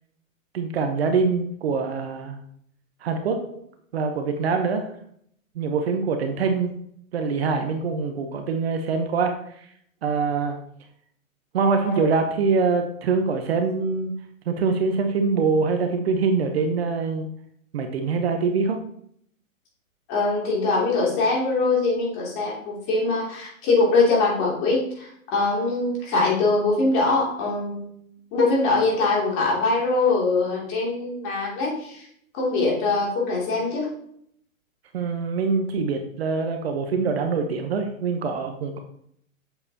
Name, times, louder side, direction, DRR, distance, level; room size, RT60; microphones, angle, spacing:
voice 1, 0.5-2.4 3.0-3.4 3.9-4.9 5.5-6.7 7.1-9.3 10.0-10.6 11.5-14.1 14.5-17.3 17.7-18.8 34.9-38.8, right 4 dB, 50° right, 6 dB, 1.0 m, -24 dB
voice 2, 20.1-27.9 28.3-32.1 32.3-33.9, left 3 dB, 30° left, -3 dB, 2.9 m, -22 dB
7.8 x 6.4 x 2.9 m, 0.68 s
hypercardioid pair, 140°, 41 cm